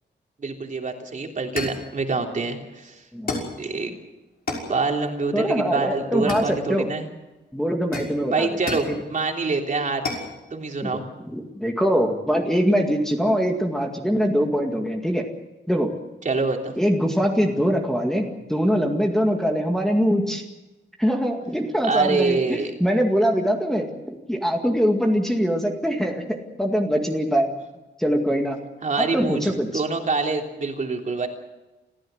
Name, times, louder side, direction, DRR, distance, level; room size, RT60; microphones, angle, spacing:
voice 1, 0.4-3.0 3.6-3.9 4.7-7.1 8.3-10.0 10.5-11.0 16.2-16.7 21.8-22.7 28.8-31.3, right 3 dB, 40° right, 2 dB, 3.3 m, -25 dB
sound 1, 0.9-1.0 1.6-1.9 3.3-3.6 4.5-4.8 6.3-6.9 7.9-9.0 10.0-10.3, left 3 dB, 50° left, 5.9 m, -31 dB
voice 2, 3.1-3.5 5.3-6.9 7.5-8.5 10.8-11.0 11.3-15.3 15.7-15.9 16.8-20.4 21.0-27.5 28.0-28.6 29.0-29.7, equal, ahead, 1 dB, 2.1 m, -23 dB
27.5 x 15.5 x 7.9 m, 1.0 s
wide cardioid pair, 165°, 19 cm